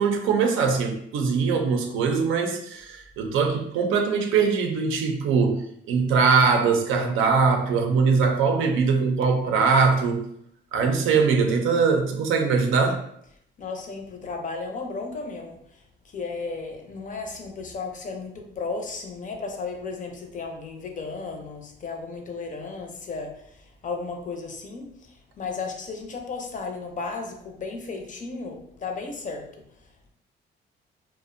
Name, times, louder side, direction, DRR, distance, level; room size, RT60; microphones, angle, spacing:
voice 1, 0.0-10.2 10.7-13.0, right 5 dB, 85° right, 4 dB, 0.5 m, -22 dB
voice 2, 13.6-15.8 16.1-29.5, left 4 dB, 40° left, 3 dB, 0.5 m, -34 dB
2.4 x 2.0 x 2.5 m, 0.72 s
cardioid pair, 90°, 20 cm